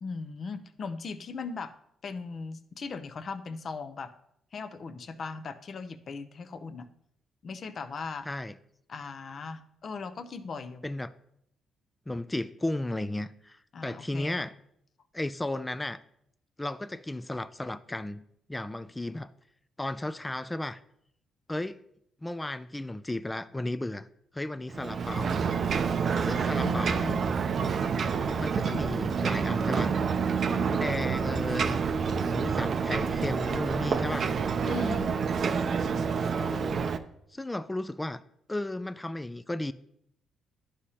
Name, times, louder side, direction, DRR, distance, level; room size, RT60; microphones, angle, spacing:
voice 1, 0.0-1.7 2.0-4.1 4.5-6.9 7.4-8.3 8.9-10.8 13.7-14.4 26.6-27.2 34.6-35.1, left 4 dB, 50° left, 0.6 m, -38 dB
voice 2, 8.3-8.6 10.8-11.1 12.1-14.5 15.1-16.0 16.6-18.2 18.5-19.3 19.8-20.8 21.5-21.8 22.2-24.1 24.3-25.4 26.2-27.1 28.4-29.9 30.5-31.8 32.2-34.3 36.3-36.8 37.3-38.2 38.5-39.7, left 1 dB, 10° left, 0.3 m, -34 dB
Ocean, 24.7-37.0, right 6 dB, 55° right, 0.5 m, -28 dB
11.0 x 4.9 x 2.9 m
cardioid pair, 90°, 0 cm